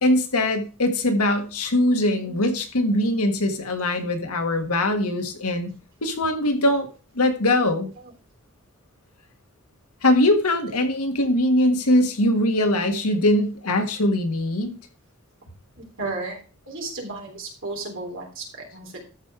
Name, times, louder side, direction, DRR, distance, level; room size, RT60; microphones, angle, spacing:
voice 1, 0.0-5.7 6.0-6.9 7.1-7.9 10.0-14.7, left 1 dB, 85° left, 6 dB, 1.7 m, -21 dB
voice 2, 7.7-8.1 12.4-12.5 15.8-16.4 16.7-19.1, right 3 dB, 60° right, 0 dB, 3.7 m, -34 dB
13.5 x 4.8 x 4.9 m, 0.35 s
head